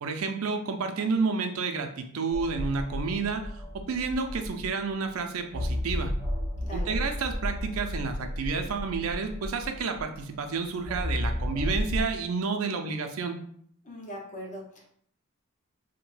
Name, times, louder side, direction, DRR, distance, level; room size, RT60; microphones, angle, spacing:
voice 1, 0.0-3.5 3.7-6.1 6.7-13.4, right 4 dB, 90° right, 6 dB, 0.5 m, -30 dB
sound 1, 2.3-4.9 5.5-10.2 10.8-12.0, left 1 dB, 10° left, 1.1 m, -32 dB
voice 2, 13.8-14.9, equal, 35° left, -2 dB, 0.9 m, -40 dB
3.4 x 2.1 x 3.2 m, 0.63 s
head